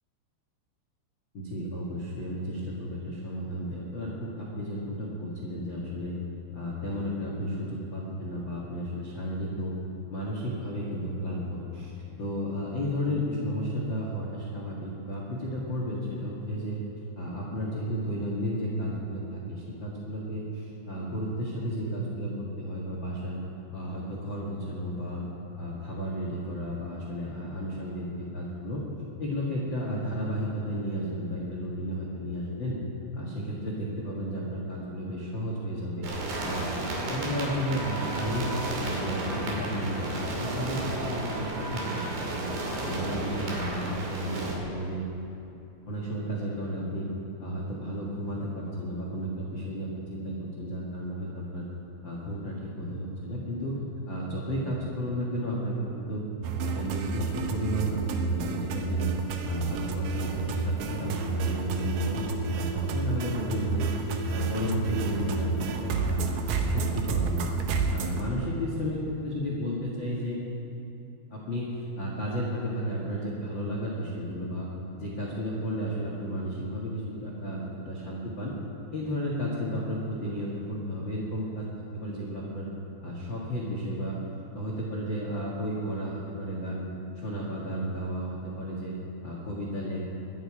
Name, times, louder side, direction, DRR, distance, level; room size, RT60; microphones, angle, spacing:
voice 1, 1.3-6.2 6.5-9.7 10.1-16.8 17.1-23.4 23.7-25.2 25.5-28.9 29.2-32.8 33.1-36.1 36.4-36.7 37.1-38.5 38.8-42.5 42.8-45.0 45.9-47.1 47.4-51.7 52.0-53.8 54.1-56.2 56.6-59.1 59.4-63.9 64.3-66.2 66.5-67.5 67.9-70.4 71.3-74.7 75.0-78.5 78.9-81.7 81.9-82.7 83.0-84.2 84.5-86.9 87.1-88.9 89.2-90.0, equal, 85° left, -4 dB, 1.0 m, -33 dB
sound 1, 36.0-44.5, right 2 dB, 65° right, 4.6 m, -33 dB
sound 2, 56.4-68.2, right 4 dB, 90° right, 1.9 m, -30 dB
22.5 x 10.5 x 5.0 m, 2.8 s
omnidirectional pair, 5.3 m